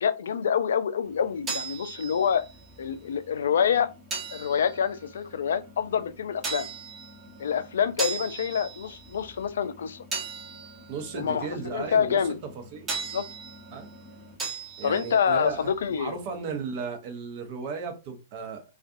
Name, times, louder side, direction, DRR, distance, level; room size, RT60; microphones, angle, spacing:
voice 1, 0.0-2.4 2.8-3.9 4.3-6.7 7.4-10.0 11.1-11.5 11.7-12.3 13.1-13.3 14.8-16.2, left 7 dB, 65° left, 0.4 m, -26 dB
sound 1, 1.0-16.6, right 4 dB, 15° right, 0.9 m, -39 dB
voice 2, 10.9-12.2 12.7-12.9 13.7-13.9 14.8-18.6, right 5 dB, 45° right, 0.8 m, -35 dB
2.5 x 2.4 x 2.4 m
figure-of-eight pair, 110°, 0 cm